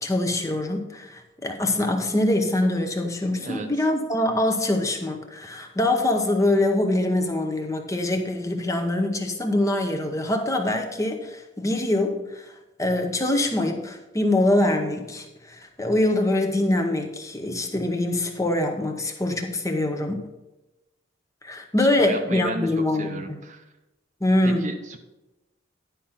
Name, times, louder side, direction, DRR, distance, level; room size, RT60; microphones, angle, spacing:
voice 1, 0.0-20.2 21.4-23.4 24.2-24.7, left 1 dB, 15° left, 4 dB, 0.8 m, -24 dB
voice 2, 3.4-3.9 21.8-23.7 24.4-25.0, right 2 dB, 35° right, 6 dB, 0.7 m, -34 dB
10.5 x 5.0 x 5.7 m, 1.0 s
head